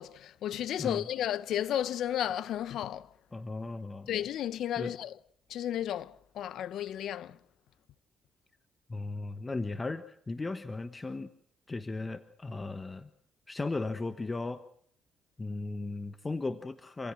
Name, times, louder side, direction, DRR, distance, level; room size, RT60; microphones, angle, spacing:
voice 1, 0.0-3.1 4.1-5.1 5.5-7.4, left 11 dB, 75° left, 0.9 m, -33 dB
voice 2, 3.3-4.1 4.8-4.9 8.9-11.3 11.7-13.1 13.5-14.6 15.4-17.1, left 3 dB, 25° left, 1.2 m, -36 dB
27.5 x 16.5 x 7.6 m
cardioid pair, 90°, 0 cm